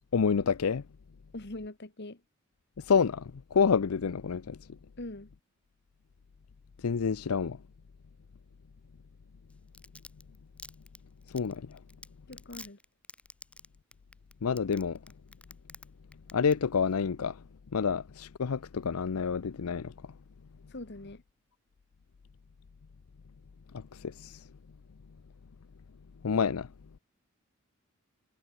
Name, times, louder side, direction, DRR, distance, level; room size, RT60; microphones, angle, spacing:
voice 1, 0.1-0.8 2.8-4.6 6.8-7.6 11.3-11.8 14.4-15.0 16.3-17.4 17.7-19.9 23.7-24.4 26.2-26.7, left 6 dB, 85° left, 0.6 m, -28 dB
voice 2, 1.3-2.2 5.0-5.3 12.3-12.8 20.7-21.2, left 1 dB, 50° left, 1.9 m, -42 dB
Domestic sounds home sounds, 9.5-15.9 16.1-16.5 16.9-17.0, left 2 dB, 5° left, 3.8 m, -48 dB
head